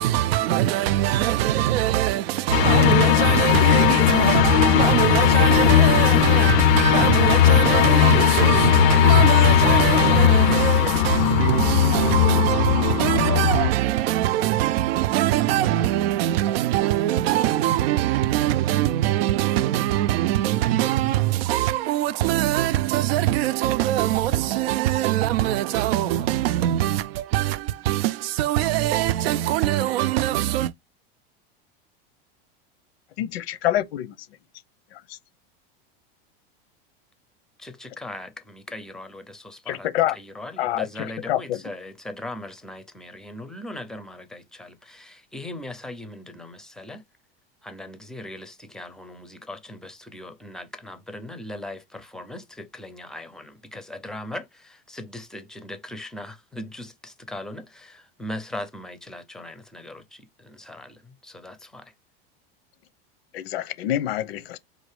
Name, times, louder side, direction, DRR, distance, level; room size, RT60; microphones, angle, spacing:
voice 1, 0.0-30.7, right 13 dB, 80° right, 0.5 m, -22 dB
sound 1, 2.5-13.7, left 13 dB, 65° left, 0.5 m, -18 dB
voice 2, 33.2-34.1 34.9-35.2 39.7-40.2 40.6-41.6 63.3-64.6, left 13 dB, 90° left, 0.9 m, -26 dB
voice 3, 37.6-39.9 40.1-47.0 47.6-61.9, left 1 dB, ahead, 0.5 m, -39 dB
4.5 x 2.5 x 3.2 m
supercardioid pair, 140°, 30 cm